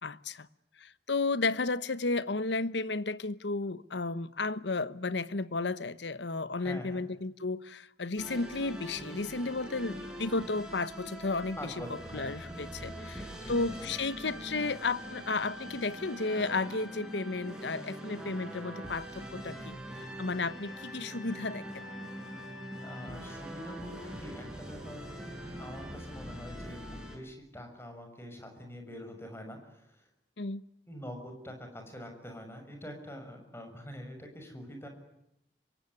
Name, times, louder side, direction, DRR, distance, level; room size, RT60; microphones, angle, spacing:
voice 1, 0.0-0.5 0.8-21.8 30.4-30.6, left 3 dB, 85° left, 1.0 m, -33 dB
voice 2, 6.6-7.1 11.6-13.7 22.8-25.0 25.6-30.1 30.9-34.9, equal, 15° left, 6.3 m, -45 dB
sound 1, 8.2-27.2, equal, 5° right, 6.0 m, -43 dB
26.5 x 23.0 x 9.7 m
head